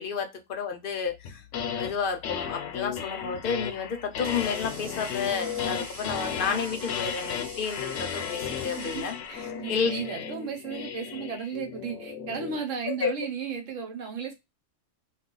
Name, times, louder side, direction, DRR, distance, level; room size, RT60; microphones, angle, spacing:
voice 1, 0.0-1.4 1.8-9.1 9.7-9.9 12.9-13.1, left 6 dB, 55° left, 0.7 m, -31 dB
sound 1, 1.2-1.9 2.2-12.6, left 8 dB, 85° left, 0.9 m, -34 dB
Water tap faucet, 3.6-10.1, right 2 dB, 40° right, 0.8 m, -46 dB
voice 2, 8.8-14.3, right 6 dB, 80° right, 1.2 m, -35 dB
2.3 x 2.3 x 3.6 m
omnidirectional pair, 1.3 m